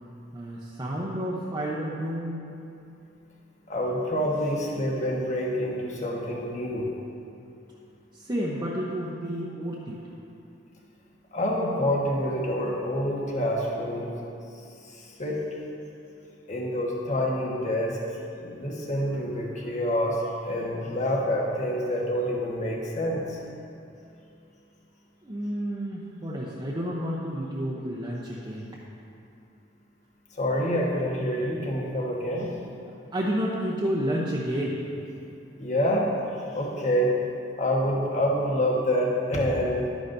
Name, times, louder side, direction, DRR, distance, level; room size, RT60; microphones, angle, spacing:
voice 1, 0.3-2.5 8.1-10.0 25.2-28.8 33.1-34.8, equal, 20° right, -6 dB, 0.8 m, -30 dB
voice 2, 3.7-6.9 11.3-14.2 14.9-15.5 16.5-18.0 18.4-23.4 30.3-32.5 35.6-36.1 36.5-37.2 37.6-39.9, equal, 40° left, -3 dB, 1.4 m, -27 dB
11.5 x 9.7 x 2.7 m, 2.6 s
head